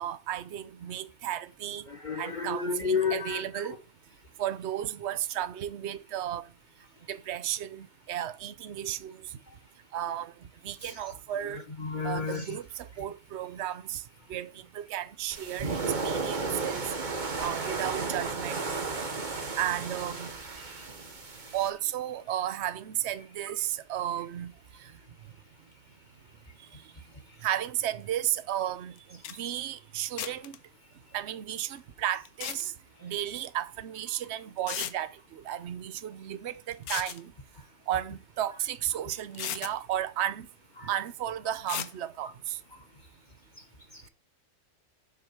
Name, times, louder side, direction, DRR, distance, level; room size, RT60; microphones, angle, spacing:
voice 1, 0.0-1.8 2.2-3.8 4.4-6.5 7.1-9.3 9.9-10.3 10.6-11.6 12.0-14.0 14.3-16.9 17.4-18.6 19.6-20.3 21.5-24.5 24.8-24.9 26.7-26.8 27.4-30.6 31.1-32.7 33.0-37.3 37.9-40.5 40.8-42.6, right 11 dB, 55° right, 1.0 m, -34 dB
voice 2, 1.9-3.4 10.8-10.9 11.8-12.4 20.7-20.8 40.8-40.9 43.9-44.0, left 5 dB, 35° left, 1.5 m, -31 dB
sound 1, 15.3-21.7, right 4 dB, 35° right, 1.4 m, -34 dB
sound 2, 29.0-29.1 29.2-29.4 30.2-30.6 32.3-32.6 34.0-34.1 34.7-34.9 36.7-37.2 38.7-38.8 39.3-39.7 41.7-41.9, left 10 dB, 85° left, 1.3 m, -35 dB
7.7 x 6.3 x 7.2 m
omnidirectional pair, 1.5 m